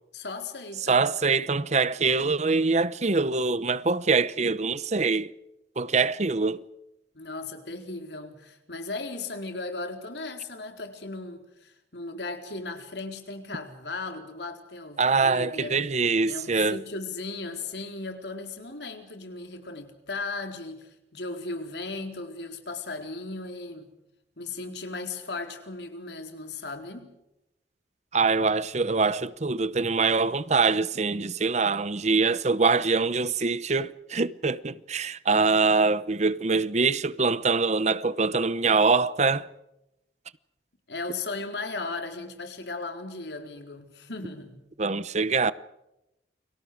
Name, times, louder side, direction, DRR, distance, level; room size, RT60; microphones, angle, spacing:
voice 1, 0.1-1.0 7.1-15.8 16.3-23.9 24.4-27.1 40.9-44.6, left 3 dB, 75° left, 4.2 m, -36 dB
voice 2, 0.9-5.3 5.8-6.6 15.0-16.8 28.1-39.5 44.8-45.5, right 4 dB, 40° right, 0.8 m, -24 dB
30.0 x 24.5 x 5.0 m
head